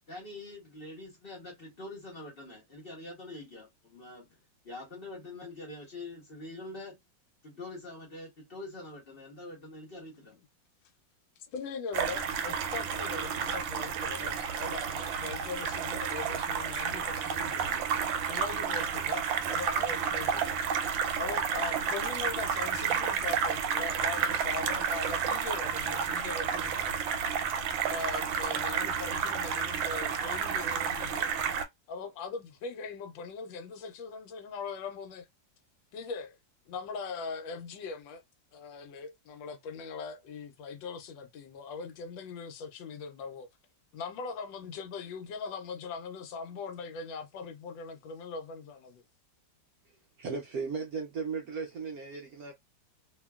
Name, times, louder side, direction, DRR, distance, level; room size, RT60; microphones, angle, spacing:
voice 1, 0.1-4.4 4.6-7.0 7.4-10.4, left 2 dB, 50° left, 0.7 m, -45 dB
voice 2, 11.4-18.0 18.3-20.6 21.2-27.0 27.9-31.4 31.9-35.3 35.9-36.4 36.7-38.2 38.5-43.5 43.9-49.0, left 4 dB, 80° left, 1.3 m, -40 dB
sound 1, 11.9-31.6, right 7 dB, 90° right, 1.3 m, -31 dB
voice 3, 50.2-52.5, right 5 dB, 75° right, 0.8 m, -36 dB
2.8 x 2.7 x 2.2 m
omnidirectional pair, 2.1 m